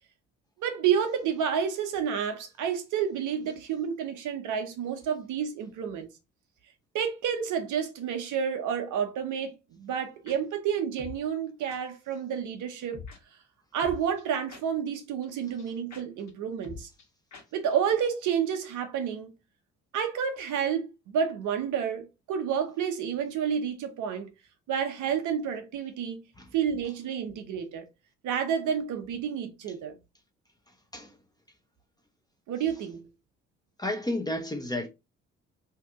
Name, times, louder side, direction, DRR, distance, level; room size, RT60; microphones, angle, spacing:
voice 1, 0.6-6.1 6.9-13.0 13.7-16.9 17.5-19.3 19.9-24.3 24.7-26.2 26.5-27.8 28.2-30.0 32.5-33.1, right 8 dB, 55° right, 0.8 m, -30 dB
sound 1, 10.3-10.4 11.0-11.2 11.7-11.8 12.9-13.2 13.8-14.9 15.2-15.3 15.6-15.7 15.9-16.0 16.3-16.4 16.6-17.1 17.3-17.4 17.7-17.8 18.0-18.1, left 5 dB, 50° left, 1.3 m, -44 dB
voice 2, 33.8-34.9, left 1 dB, 10° left, 0.8 m, -31 dB
2.8 x 2.6 x 3.5 m
figure-of-eight pair, 45°, 35 cm